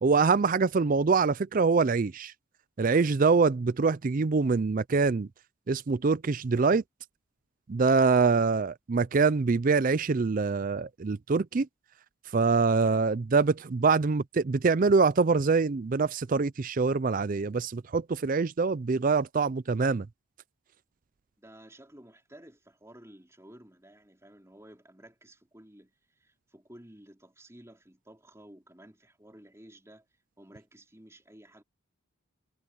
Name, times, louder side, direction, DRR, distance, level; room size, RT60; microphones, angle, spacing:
voice 1, 0.0-2.3 2.8-5.3 5.7-6.8 7.7-11.7 12.3-20.1, right 4 dB, 40° right, 0.4 m, -24 dB
voice 2, 21.4-30.1 30.4-31.6, right 1 dB, 15° right, 4.1 m, -53 dB
head